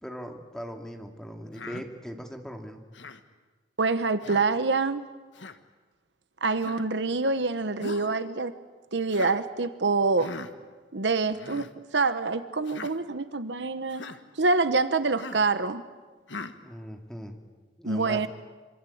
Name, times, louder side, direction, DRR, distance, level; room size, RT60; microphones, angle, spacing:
voice 1, 0.0-2.8 16.6-17.4 17.8-18.3, equal, 5° left, 3 dB, 2.5 m, -39 dB
Human voice, 1.5-1.8 2.9-3.2 4.2-4.5 5.3-5.6 6.6-6.9 7.8-8.1 9.1-9.4 10.2-10.5 11.3-11.7 12.6-12.9 13.9-14.2 15.2-15.5 16.3-16.6, left 3 dB, 85° left, 1.5 m, -40 dB
voice 2, 3.8-5.0 6.4-8.5 8.9-10.3 10.9-14.0 14.4-15.8 17.8-18.3, right 3 dB, 70° right, 12 dB, 1.1 m, -26 dB
26.0 x 26.0 x 8.7 m, 1.3 s
head